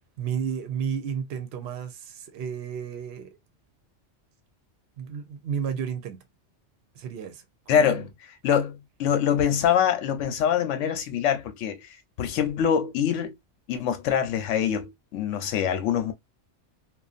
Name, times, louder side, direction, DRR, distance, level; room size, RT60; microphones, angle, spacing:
voice 1, 0.2-3.4 5.0-6.2 6.9-8.1, right 7 dB, 65° right, 0.8 m, -32 dB
voice 2, 7.7-8.1 8.4-13.3 13.7-16.1, left 8 dB, 85° left, 1.0 m, -24 dB
2.6 x 2.2 x 2.4 m
omnidirectional pair, 1.2 m